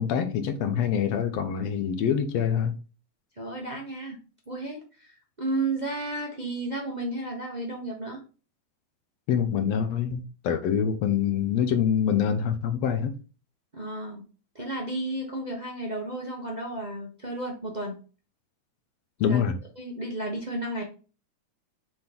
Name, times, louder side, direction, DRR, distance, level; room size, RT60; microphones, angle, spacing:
voice 1, 0.0-2.8 9.3-13.2 19.2-19.6, left 8 dB, 75° left, 1.8 m, -25 dB
voice 2, 3.4-4.2 4.5-8.2 13.7-14.2 14.5-18.0 19.3-19.4 19.8-20.8, right 2 dB, 40° right, 0.6 m, -33 dB
7.8 x 3.8 x 4.3 m
omnidirectional pair, 3.3 m